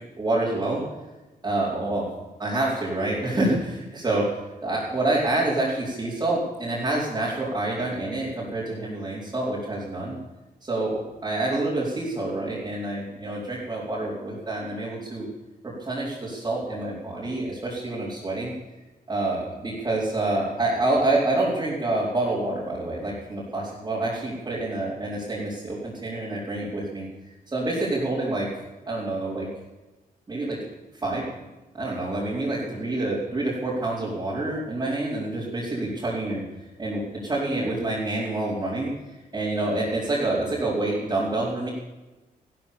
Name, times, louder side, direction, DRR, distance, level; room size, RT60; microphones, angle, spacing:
voice 1, 0.2-0.8 1.4-2.1 2.4-4.2 4.6-10.2 10.6-15.3 15.8-18.5 19.1-27.1 27.5-28.5 28.9-29.5 30.3-30.6 31.0-31.2 31.7-36.4 36.8-38.9 39.3-41.7, right 2 dB, 25° right, -8 dB, 4.5 m, -27 dB
15.5 x 12.0 x 7.0 m, 1.1 s
wide cardioid pair, 135°, 16 cm